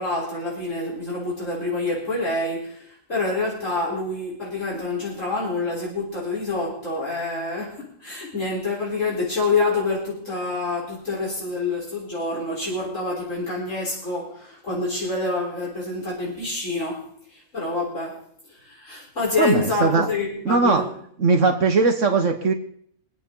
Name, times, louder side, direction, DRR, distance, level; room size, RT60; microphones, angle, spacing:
voice 1, 0.0-18.2 18.5-20.9, left 3 dB, 65° left, -4 dB, 4.5 m, -27 dB
voice 2, 19.4-20.1 20.4-20.8 21.2-22.5, right 4 dB, 65° right, 4 dB, 1.6 m, -19 dB
25.0 x 8.3 x 3.8 m, 0.64 s
omnidirectional pair, 1.4 m